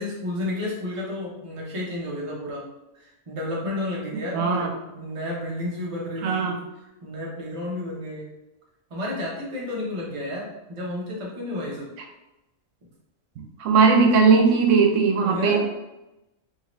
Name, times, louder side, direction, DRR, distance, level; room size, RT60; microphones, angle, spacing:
voice 1, 0.0-2.7 2.9-6.6 7.0-8.3 8.9-11.9 15.2-15.6, left 1 dB, 35° right, -3 dB, 0.7 m, -31 dB
voice 2, 4.3-4.7 6.2-6.6 13.6-15.6, right 5 dB, 90° right, 3 dB, 0.9 m, -18 dB
2.7 x 2.7 x 3.0 m, 0.94 s
omnidirectional pair, 1.3 m